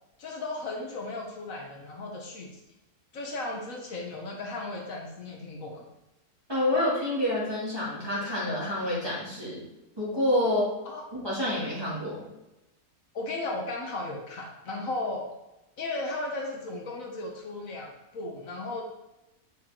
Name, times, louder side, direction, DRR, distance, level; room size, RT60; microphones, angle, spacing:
voice 1, 0.2-2.6 3.1-5.8 10.8-11.0 13.1-15.3 15.8-18.8, left 2 dB, 70° left, 0 dB, 1.5 m, -35 dB
voice 2, 6.5-9.6 10.0-10.7 11.1-12.2, left 1 dB, 15° right, -7 dB, 2.3 m, -28 dB
7.7 x 4.6 x 3.7 m, 0.95 s
omnidirectional pair, 1.5 m